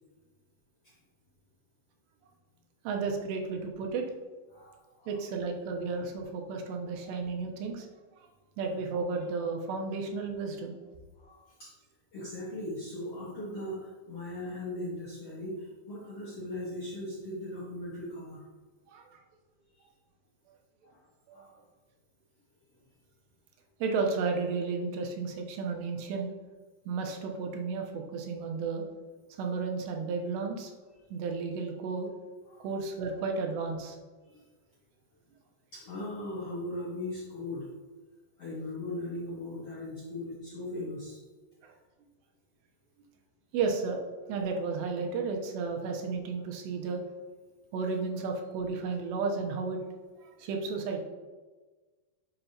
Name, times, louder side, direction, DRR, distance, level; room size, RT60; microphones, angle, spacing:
voice 1, 2.8-4.1 5.1-7.9 8.6-10.8 18.9-19.2 21.3-21.4 23.8-26.3 26.9-28.8 29.4-30.7 31.1-32.1 32.6-34.0 41.6-41.7 43.5-44.0 44.3-47.0 47.7-49.8 50.2-51.0, right 4 dB, 85° right, 2 dB, 3.1 m, -33 dB
voice 2, 4.5-5.1 11.2-11.7 12.1-18.4 19.8-19.9 20.8-21.0 21.3-21.5 32.5-32.7 34.3-34.4 35.7-37.7 38.4-41.2, left 1 dB, 65° left, -7 dB, 1.5 m, -39 dB
11.0 x 6.9 x 2.9 m, 1.3 s
omnidirectional pair, 4.9 m